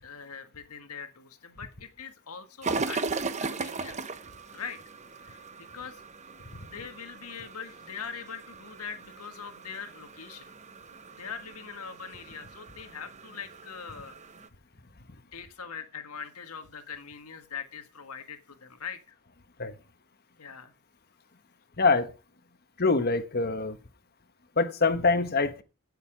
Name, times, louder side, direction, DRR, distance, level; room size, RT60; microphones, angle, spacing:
voice 1, 0.0-4.0 4.5-4.8 5.2-6.0 6.6-10.5 11.2-14.1 15.3-19.2 20.4-20.7, left 6 dB, 90° left, 1.6 m, -42 dB
sound 1, 2.6-14.5, right 4 dB, 30° right, 0.9 m, -38 dB
voice 2, 21.8-22.1 22.8-23.8 24.6-25.6, left 3 dB, 45° left, 1.3 m, -24 dB
16.5 x 6.8 x 5.1 m
head